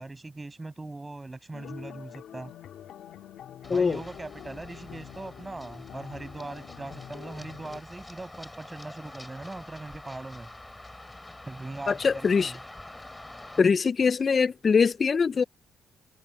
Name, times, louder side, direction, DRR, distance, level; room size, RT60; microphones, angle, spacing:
voice 1, 0.0-2.5 3.7-10.5 11.5-12.6, right 2 dB, 20° right, 7.0 m, -40 dB
sound 1, 1.5-7.8, left 10 dB, 70° left, 2.4 m, -46 dB
Run, 3.6-13.6, left 2 dB, 10° left, 2.7 m, -46 dB
voice 2, 11.9-12.5 13.6-15.4, left 5 dB, 40° left, 0.3 m, -23 dB
cardioid pair, 90°, 0 cm